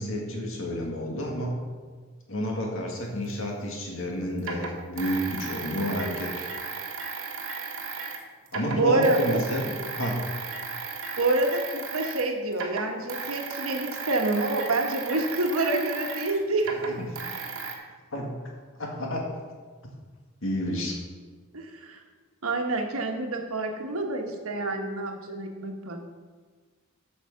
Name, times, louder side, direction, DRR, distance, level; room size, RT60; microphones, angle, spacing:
voice 1, 0.0-1.6 2.3-6.5 8.5-10.2 16.9-17.0 18.1-18.3 18.8-19.3 20.4-21.0, equal, 65° left, 0 dB, 2.1 m, -30 dB
sound 1, 3.3-3.4 4.4-8.2 8.5-12.3 12.5-17.7, right 5 dB, 65° right, 1.3 m, -35 dB
voice 2, 8.7-9.4 11.2-16.9 21.5-22.0 22.4-26.0, right 2 dB, 80° right, 3 dB, 1.4 m, -27 dB
8.2 x 6.4 x 6.6 m, 1.5 s
head